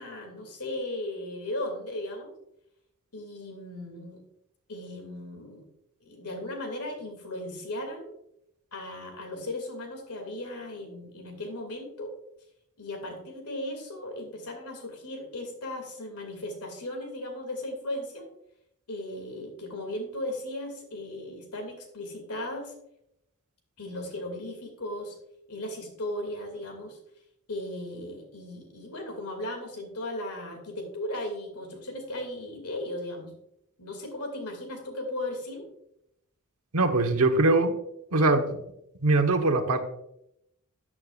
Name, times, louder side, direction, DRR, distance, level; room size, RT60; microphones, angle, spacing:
voice 1, 0.0-2.3 3.1-4.2 4.7-5.7 6.0-8.1 8.7-12.1 12.8-18.3 18.9-22.7 23.8-25.2 25.5-27.0 27.5-33.3 33.8-35.7, left 1 dB, 85° left, 4 dB, 2.5 m, -36 dB
voice 2, 36.7-37.7 38.1-38.5 39.0-39.8, right 2 dB, 75° right, 6 dB, 1.2 m, -22 dB
13.5 x 8.6 x 2.5 m, 0.81 s
head